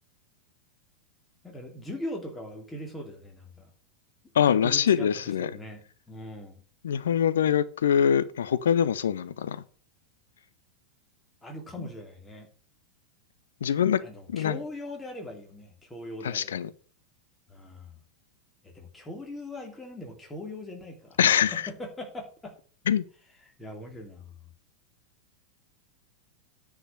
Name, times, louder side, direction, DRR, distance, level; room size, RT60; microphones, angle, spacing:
voice 1, 1.4-3.7 4.3-5.1 5.4-6.6 11.4-12.5 14.0-16.5 17.5-18.0 18.6-21.2 21.5-22.5 23.6-24.3, left 1 dB, 10° left, 3.0 m, -40 dB
voice 2, 4.3-5.5 6.8-9.6 13.6-14.0 14.3-14.6 16.2-16.7 21.2-21.5 22.9-23.0, left 8 dB, 65° left, 0.7 m, -24 dB
9.9 x 5.0 x 7.7 m
figure-of-eight pair, 90°, 0 cm